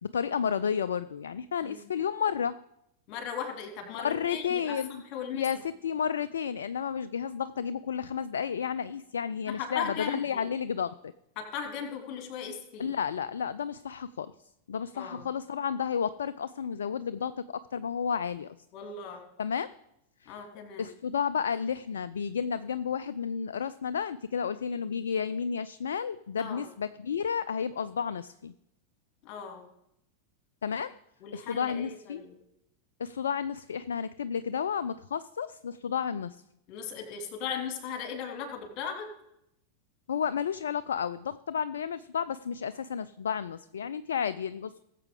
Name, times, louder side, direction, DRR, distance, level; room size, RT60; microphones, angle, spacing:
voice 1, 0.0-2.6 4.0-5.0 5.3-11.0 12.8-14.3 14.7-18.6 19.4-19.7 20.2-20.4 20.8-28.5 30.6-31.0 31.3-32.2 33.0-36.4 40.1-44.8, left 7 dB, 65° left, 14 dB, 0.4 m, -32 dB
voice 2, 3.1-5.6 9.5-10.5 11.4-12.9 14.9-15.3 18.7-19.2 20.2-20.9 26.4-26.7 29.2-29.7 31.2-32.3 36.7-39.1, left 7 dB, 40° left, 3 dB, 2.6 m, -38 dB
19.0 x 7.5 x 3.8 m, 0.82 s
figure-of-eight pair, 90°, 0 cm